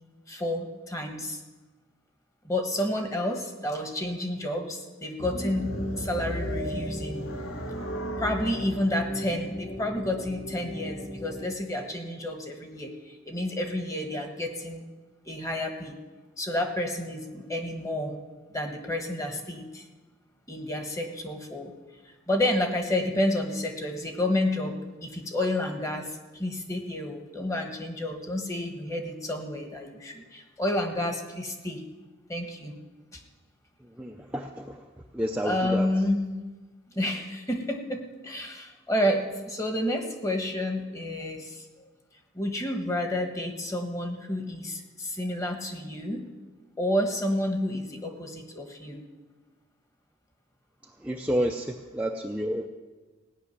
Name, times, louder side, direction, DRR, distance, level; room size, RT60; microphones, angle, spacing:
voice 1, 0.3-1.4 2.4-7.3 8.2-14.9 15.3-16.0 16.4-18.1 18.5-19.8 20.5-21.7 22.3-31.8 32.3-32.8 33.1-33.2 35.4-36.2 36.9-41.6 42.3-46.2 46.8-49.0, left 1 dB, 15° left, 4 dB, 1.3 m, -30 dB
sound 1, 5.2-11.5, equal, 80° left, 1.9 m, -35 dB
voice 2, 34.0-34.8 35.1-35.9 51.0-52.7, equal, 5° right, 1 dB, 0.5 m, -30 dB
16.5 x 6.3 x 9.6 m, 1.3 s
head